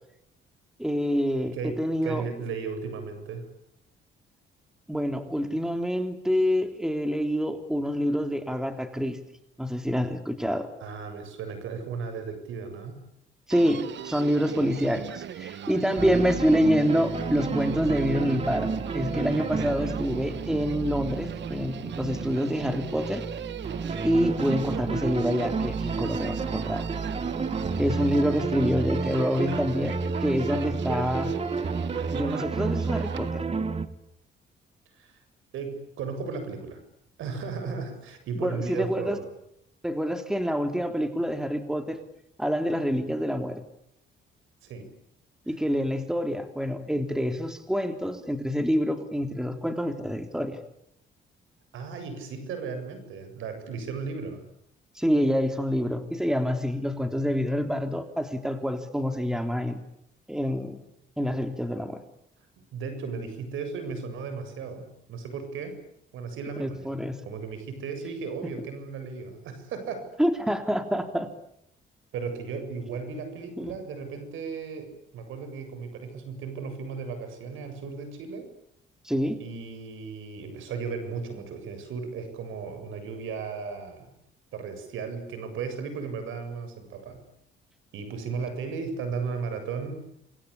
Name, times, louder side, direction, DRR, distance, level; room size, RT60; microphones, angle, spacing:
voice 1, 0.8-2.3 4.9-9.2 9.6-10.7 13.5-23.2 24.0-26.9 27.8-31.3 32.1-33.4 38.4-39.2 39.8-42.0 42.4-43.6 45.5-50.6 55.0-59.8 60.3-60.8 61.2-62.0 66.6-67.2 70.2-71.3 73.6-73.7 79.0-79.4, equal, 5° right, 7 dB, 3.5 m, -27 dB
voice 2, 1.4-3.5 10.8-13.0 35.0-35.2 35.5-36.8 37.2-39.3 44.6-44.9 45.5-45.6 51.7-54.4 62.6-65.8 66.1-66.9 67.2-70.1 72.1-78.5 79.4-84.1 84.5-87.2 87.9-90.0, right 5 dB, 85° right, 8 dB, 7.6 m, -35 dB
Human voice, 13.5-33.3, right 10 dB, 65° right, 1.4 m, -39 dB
sound 1, 16.0-33.9, right 4 dB, 30° right, 2.3 m, -31 dB
28.5 x 23.5 x 8.6 m, 0.76 s
cardioid pair, 90°, 20 cm